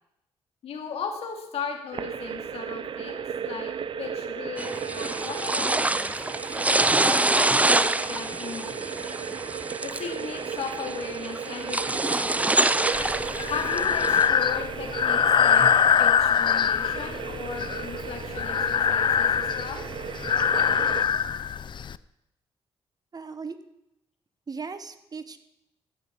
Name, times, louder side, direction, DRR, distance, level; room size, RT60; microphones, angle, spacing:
voice 1, 0.6-3.7 4.0-6.4 7.0-9.0 9.8-12.5 13.5-15.7 16.0-19.8, left 6 dB, 75° left, 3 dB, 2.4 m, -37 dB
sound 1, 1.9-21.1, right 7 dB, 55° right, 0.7 m, -36 dB
sound 2, 4.6-14.3, right 2 dB, 15° right, 0.6 m, -26 dB
Breathing, 12.9-22.0, left 7 dB, 50° left, 0.5 m, -23 dB
voice 2, 23.1-23.6 24.5-25.4, right 5 dB, 40° right, 10 dB, 1.2 m, -37 dB
13.5 x 5.3 x 9.3 m, 0.86 s
supercardioid pair, 65°, 10 cm